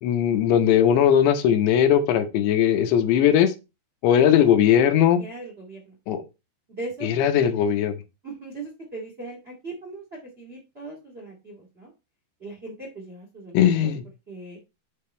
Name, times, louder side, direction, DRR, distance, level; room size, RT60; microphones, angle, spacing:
voice 1, 0.0-3.5 4.0-5.2 6.1-6.2 7.0-7.9 13.5-14.0, left 9 dB, 75° left, 8 dB, 3.0 m, -19 dB
voice 2, 5.2-5.9 6.7-7.1 7.4-7.5 8.2-11.9 12.4-13.9 14.3-14.6, right 2 dB, 45° right, -1 dB, 0.8 m, -39 dB
7.0 x 5.7 x 4.3 m, 0.26 s
omnidirectional pair, 5.3 m